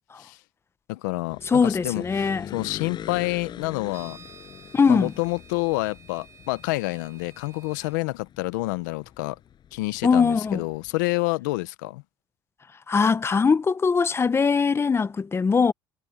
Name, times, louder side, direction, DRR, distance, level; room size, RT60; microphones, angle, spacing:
voice 1, 0.9-4.2 4.9-9.4 9.7-12.0, left 22 dB, 90° left, 0.8 m, -28 dB
sound 1, 1.3-11.0, left 9 dB, 50° left, 6.7 m, -43 dB
voice 2, 1.5-2.4 4.7-5.1 10.0-10.6 12.9-15.7, left 5 dB, 25° left, 1.0 m, -21 dB
sound 2, 3.9-8.0, right 5 dB, 30° right, 4.2 m, -51 dB
supercardioid pair, 80°, 10 cm